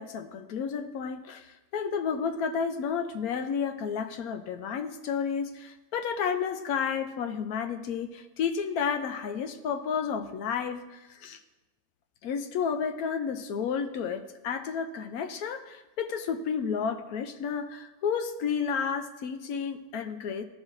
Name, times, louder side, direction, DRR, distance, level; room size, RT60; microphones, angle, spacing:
voice 1, 0.0-11.4 12.2-20.4, left 6 dB, 90° left, 6 dB, 1.1 m, -31 dB
13.5 x 4.8 x 2.5 m, 1.1 s
omnidirectional pair, 1.5 m